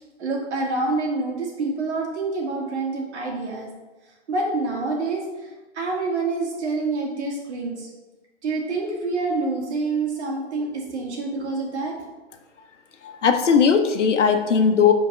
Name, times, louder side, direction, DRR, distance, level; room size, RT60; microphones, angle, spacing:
voice 1, 0.0-3.7 4.3-7.9 8.4-11.9, right 3 dB, 70° right, -2 dB, 2.5 m, -27 dB
voice 2, 13.0-14.9, left 6 dB, 85° left, 6 dB, 1.1 m, -18 dB
5.4 x 4.6 x 6.0 m, 1.2 s
hypercardioid pair, 155°, 35 cm